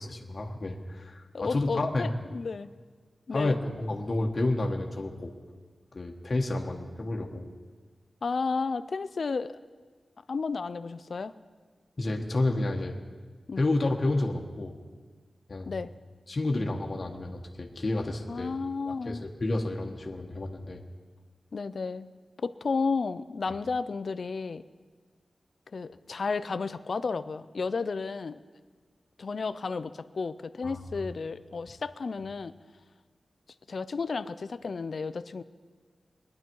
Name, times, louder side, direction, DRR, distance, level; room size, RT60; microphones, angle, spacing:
voice 1, 0.0-2.1 3.3-5.3 5.9-7.5 12.0-12.9 13.6-14.7 15.5-15.8 16.3-18.6 18.8-20.8 30.6-30.8, left 2 dB, 45° left, 1 dB, 1.3 m, -30 dB
voice 2, 1.3-2.7 3.3-3.6 8.2-9.6 10.3-11.3 13.5-13.6 15.7-15.9 18.3-19.2 21.5-22.1 22.4-24.6 25.7-28.4 29.2-32.5 33.7-35.4, left 4 dB, 60° left, 13 dB, 0.5 m, -32 dB
21.5 x 10.5 x 4.6 m, 1.5 s
wide cardioid pair, 125°, 0 cm